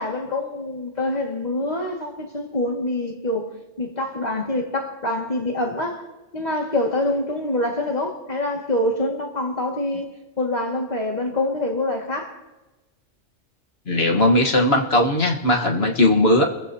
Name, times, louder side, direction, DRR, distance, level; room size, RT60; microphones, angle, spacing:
voice 1, 0.0-3.5 3.8-6.0 6.3-10.1 10.4-12.4, left 1 dB, 35° left, 2.3 m, -25 dB
voice 2, 13.9-16.4, left 1 dB, 50° left, 1.7 m, -18 dB
28.5 x 15.0 x 2.9 m
omnidirectional pair, 1.3 m